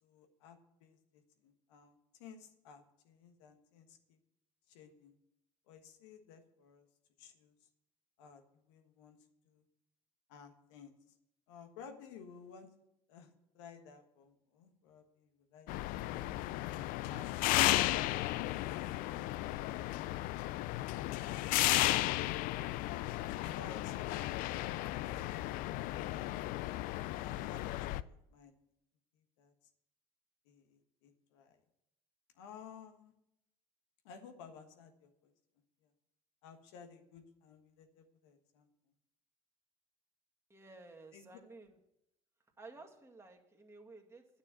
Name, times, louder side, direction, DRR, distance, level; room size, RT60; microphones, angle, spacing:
voice 1, 0.0-4.2 4.7-5.1 5.7-6.9 7.2-7.7 8.2-9.2 9.4-9.6 10.3-11.1 11.5-12.7 13.1-15.9 16.6-19.1 23.5-24.0 24.4-24.6 24.9-25.4 26.0-28.6 29.1-29.5 30.4-31.6 32.3-33.1 34.0-35.3 35.8-35.9 36.4-38.7 41.1-41.3, left 6 dB, 85° left, 7 dB, 1.4 m, -56 dB
sound 1, 15.7-28.0, left 16 dB, 70° left, 0.4 m, -34 dB
voice 2, 40.5-41.8 42.6-44.4, right 3 dB, 20° right, 1 dB, 2.0 m, -54 dB
9.6 x 6.6 x 8.1 m, 0.81 s
supercardioid pair, 75°, 15 cm